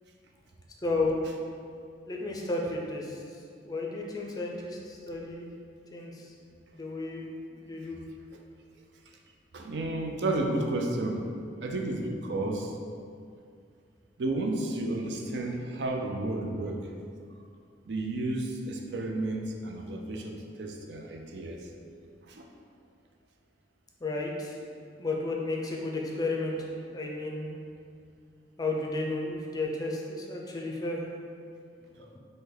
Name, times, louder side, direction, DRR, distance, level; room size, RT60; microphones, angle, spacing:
voice 1, 0.8-1.2 2.1-3.2 3.6-5.5 5.9-6.3 6.7-7.2 7.5-8.0 24.0-24.6 25.0-27.5 28.6-31.1 32.0-32.2, left 2 dB, 20° left, -1 dB, 0.4 m, -33 dB
voice 2, 9.5-11.3 11.6-12.7 14.2-16.9 17.9-21.7 22.3-22.5, right 2 dB, 70° right, 2 dB, 0.5 m, -32 dB
5.3 x 2.2 x 3.8 m, 2.3 s
head